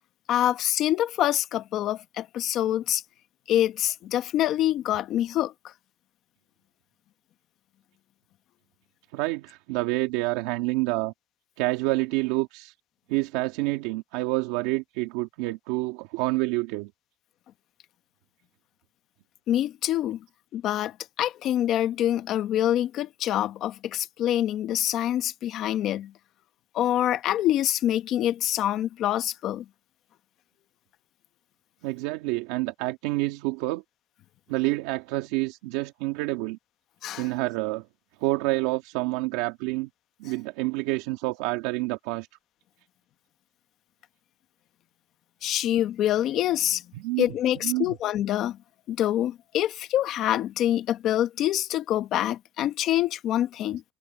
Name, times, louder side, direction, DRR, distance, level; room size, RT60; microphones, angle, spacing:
voice 1, 0.3-3.0 3.5-5.5 19.5-20.2 20.5-26.1 26.7-29.6 37.0-37.3 45.4-46.8 47.2-48.6 48.9-53.8, left 12 dB, 55° left, 1.1 m, -25 dB
voice 2, 9.1-11.1 11.6-12.7 13.1-16.9 31.8-33.8 34.5-36.6 37.2-37.9 38.2-39.9 40.2-42.3 47.0-47.3 47.6-47.9, right 21 dB, 90° right, 2.0 m, -28 dB
cardioid pair, 130°, 0 cm